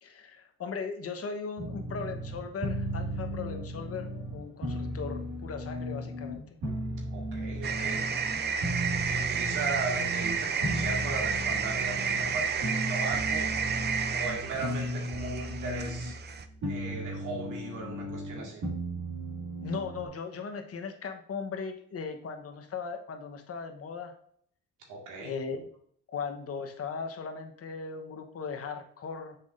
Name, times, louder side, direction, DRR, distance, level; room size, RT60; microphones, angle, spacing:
voice 1, 0.0-6.6 19.6-24.1 25.2-25.7 26.1-29.4, left 5 dB, 50° left, 6 dB, 1.0 m, -38 dB
sound 1, 1.6-20.1, equal, 70° right, 2.3 m, -35 dB
voice 2, 7.1-8.0 9.0-13.5 14.1-16.2 16.7-18.6 24.9-25.4, right 3 dB, 85° right, 0 dB, 2.0 m, -37 dB
sound 2, 7.6-16.4, right 6 dB, 35° right, 0.5 m, -31 dB
7.0 x 5.6 x 2.5 m, 0.62 s
cardioid pair, 90°, 30 cm